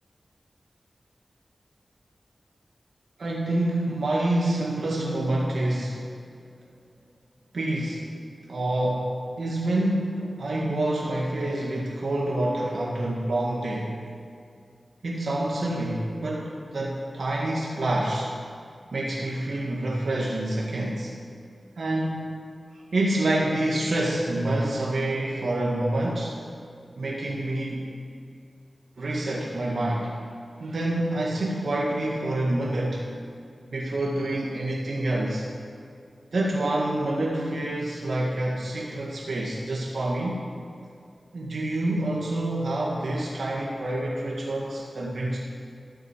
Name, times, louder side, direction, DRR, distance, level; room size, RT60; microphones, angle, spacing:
voice 1, 3.2-6.0 7.5-8.1 8.5-9.1 9.4-14.0 15.0-18.3 18.9-21.1 21.8-22.3 22.7-26.3 27.0-27.8 29.0-30.1 30.6-33.1 33.7-35.5 36.3-40.4 41.3-45.4, right 1 dB, 80° right, -3 dB, 1.8 m, -27 dB
14.0 x 9.5 x 7.4 m, 2.3 s
wide cardioid pair, 70°, 0 cm